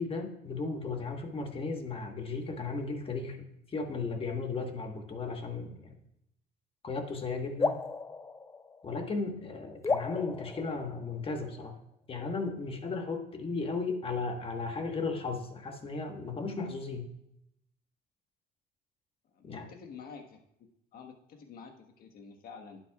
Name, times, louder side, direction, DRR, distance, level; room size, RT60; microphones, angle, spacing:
voice 1, 0.0-3.4 3.7-5.9 6.8-7.8 8.8-11.8 12.1-17.1 19.4-19.7, left 4 dB, 35° left, 5 dB, 1.3 m, -35 dB
sound 1, 7.6-9.2 9.8-11.5, left 4 dB, 15° left, 0.4 m, -34 dB
voice 2, 19.3-20.4 20.9-22.8, left 5 dB, 65° left, 3 dB, 1.4 m, -48 dB
11.0 x 8.9 x 2.4 m, 0.79 s
cardioid pair, 110°, 17 cm